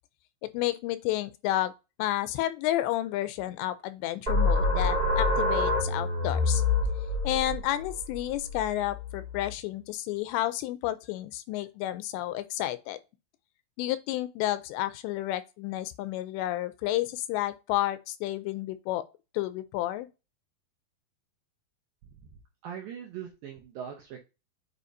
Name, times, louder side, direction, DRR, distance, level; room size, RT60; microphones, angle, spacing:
voice 1, 0.5-1.7 2.0-6.6 7.2-13.0 13.8-19.0 19.3-20.1, left 14 dB, 85° left, 2.7 m, -31 dB
sound 1, 4.3-9.5, left 2 dB, 25° right, 1.2 m, -27 dB
voice 2, 22.6-24.2, right 8 dB, 75° right, 2.1 m, -41 dB
8.4 x 4.7 x 2.6 m
omnidirectional pair, 5.1 m